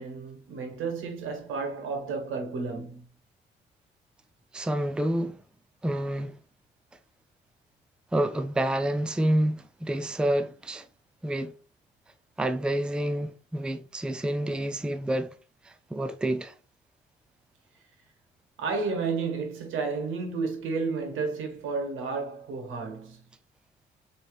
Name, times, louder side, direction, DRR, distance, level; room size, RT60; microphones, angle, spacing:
voice 1, 0.0-3.0 18.6-23.2, right 4 dB, 85° right, 1.4 m, -32 dB
voice 2, 4.5-5.4 5.8-6.3 8.1-10.9 11.2-11.5 12.4-15.3 15.6-16.5, right 1 dB, 5° right, 0.4 m, -28 dB
4.7 x 3.1 x 2.4 m
cardioid pair, 90°, 20 cm